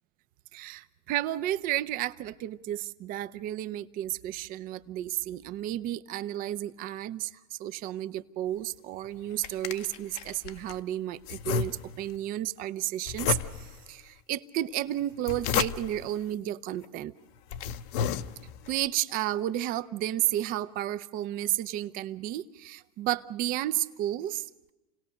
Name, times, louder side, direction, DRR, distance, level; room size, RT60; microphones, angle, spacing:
voice 1, 0.5-17.1 18.7-24.7, right 13 dB, 45° right, 14 dB, 0.9 m, -32 dB
sound 1, 9.0-10.8 11.3-12.2 13.1-13.9 15.0-16.1 16.8-16.9 17.4-18.7, left 9 dB, 55° left, 0.9 m, -32 dB
28.0 x 18.0 x 6.5 m, 1.0 s
supercardioid pair, 120°, 20 cm